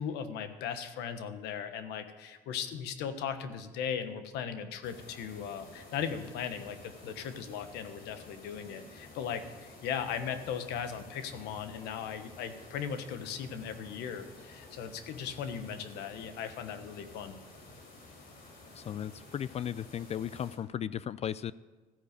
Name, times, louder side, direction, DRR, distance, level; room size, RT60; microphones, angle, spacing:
voice 1, 0.0-17.4, left 7 dB, 90° left, 10 dB, 1.2 m, -38 dB
sound 1, 4.8-20.6, left 2 dB, 60° left, 3.8 m, -52 dB
voice 2, 18.7-21.5, left 9 dB, 40° left, 18 dB, 0.4 m, -36 dB
14.0 x 10.0 x 6.7 m, 1.3 s
cardioid pair, 110°, 17 cm